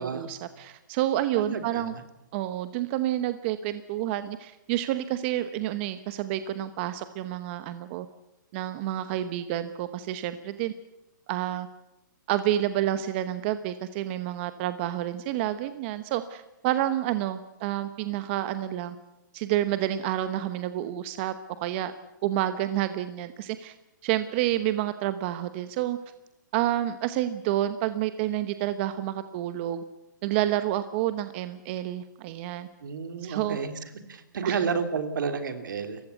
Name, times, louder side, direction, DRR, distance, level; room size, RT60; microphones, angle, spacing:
voice 1, 0.0-1.9 2.3-8.1 8.5-10.7 11.3-11.7 12.3-19.0 19.3-21.3 21.6-21.9 22.2-23.7 24.0-26.0 26.5-29.8 30.2-32.7 33.2-33.6 34.4-34.6, right 13 dB, 35° right, 11 dB, 1.0 m, -29 dB
voice 2, 1.4-2.0 32.8-33.7 34.1-36.0, right 6 dB, 70° right, 8 dB, 3.1 m, -31 dB
29.5 x 15.5 x 8.2 m, 0.93 s
hypercardioid pair, 150°, 11 cm